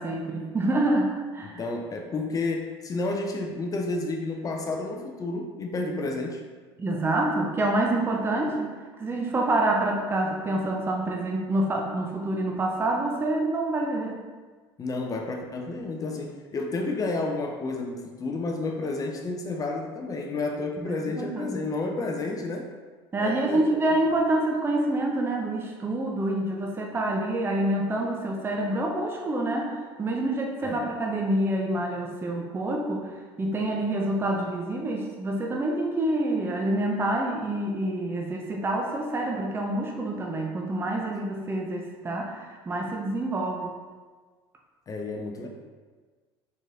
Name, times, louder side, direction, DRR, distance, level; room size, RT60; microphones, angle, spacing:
voice 1, 0.0-1.6 6.8-14.2 20.8-21.7 23.1-33.1 33.4-43.7, right 1 dB, 15° right, 0 dB, 0.6 m, -27 dB
voice 2, 1.4-6.4 14.8-22.7 23.2-23.8 30.6-30.8 44.9-45.5, left 3 dB, 25° left, 2 dB, 0.6 m, -31 dB
4.6 x 4.1 x 2.5 m, 1.4 s
figure-of-eight pair, 70°, 14 cm